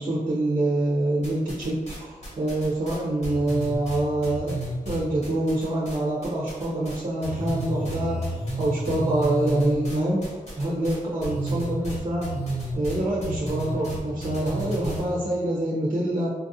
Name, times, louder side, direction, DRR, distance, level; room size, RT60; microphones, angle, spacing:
voice 1, 0.0-4.5 4.8-8.3 8.6-12.3 12.7-16.3, right 1 dB, 50° right, -6 dB, 0.8 m, -26 dB
sound 1, 1.2-6.0 6.2-7.0 7.2-15.0, right 1 dB, 45° left, 1.4 m, -31 dB
4.4 x 2.5 x 2.7 m, 1.3 s
wide cardioid pair, 75°, 15 cm